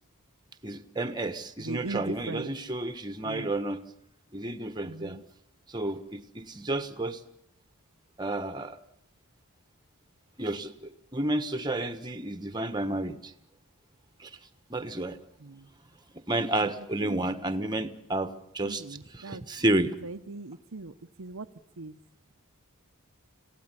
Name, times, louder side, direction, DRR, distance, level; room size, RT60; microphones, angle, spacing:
voice 1, 0.6-3.8 4.3-5.2 5.7-7.2 8.2-8.8 10.4-13.3 14.2-14.3 14.7-15.2 16.3-18.8 19.1-19.9, right 1 dB, 20° right, 10 dB, 1.4 m, -31 dB
voice 2, 1.6-2.5 3.2-3.5 4.8-5.2 15.4-15.7 16.6-16.7 17.0-17.3 18.6-19.4 20.0-20.9 21.2-21.5 21.8-22.0, right 3 dB, 65° right, 7 dB, 0.9 m, -39 dB
26.5 x 17.0 x 9.9 m, 0.73 s
head